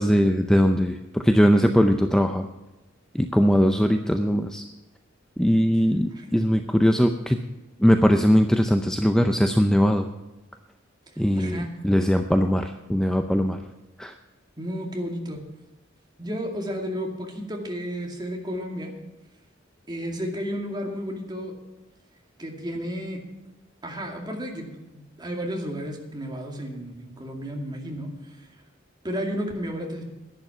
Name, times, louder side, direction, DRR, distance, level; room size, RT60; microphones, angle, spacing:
voice 1, 0.0-2.5 3.1-4.6 5.4-7.4 7.8-10.1 11.2-13.6 14.0-14.1, equal, 5° left, 6 dB, 0.6 m, -20 dB
voice 2, 11.4-11.7 14.6-15.4 16.2-18.9 19.9-21.5 22.4-23.2 23.8-28.5 29.0-30.0, equal, 20° right, 1 dB, 2.3 m, -32 dB
11.0 x 10.5 x 5.8 m, 1.1 s
head